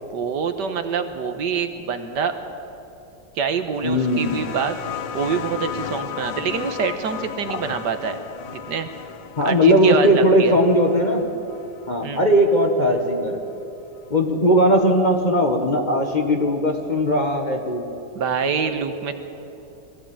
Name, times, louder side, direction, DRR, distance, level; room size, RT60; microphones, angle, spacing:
voice 1, 0.1-2.4 3.4-4.8 5.1-8.2 8.6-8.9 9.4-10.6 12.0-12.2 18.1-19.2, right 6 dB, 70° right, 8 dB, 1.7 m, -25 dB
sound 1, 3.7-13.0 14.1-14.2, left 9 dB, 85° left, 1.6 m, -35 dB
voice 2, 3.8-4.4 7.5-7.6 9.4-11.2 11.9-13.4 14.1-17.8, equal, 25° left, 3 dB, 1.3 m, -18 dB
21.0 x 15.0 x 8.8 m, 2.8 s
omnidirectional pair, 2.0 m